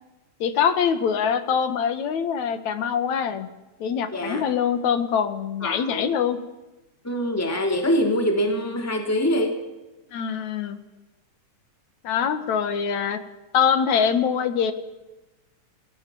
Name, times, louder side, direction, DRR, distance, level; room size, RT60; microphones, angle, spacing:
voice 1, 0.4-3.5 3.8-6.4 10.1-10.8 12.0-13.2 13.5-14.7, left 7 dB, 75° left, 10 dB, 3.0 m, -23 dB
voice 2, 4.1-4.5 5.6-6.1 7.0-9.6, equal, 5° left, 3 dB, 2.8 m, -24 dB
29.0 x 20.5 x 7.1 m, 1.1 s
omnidirectional pair, 3.3 m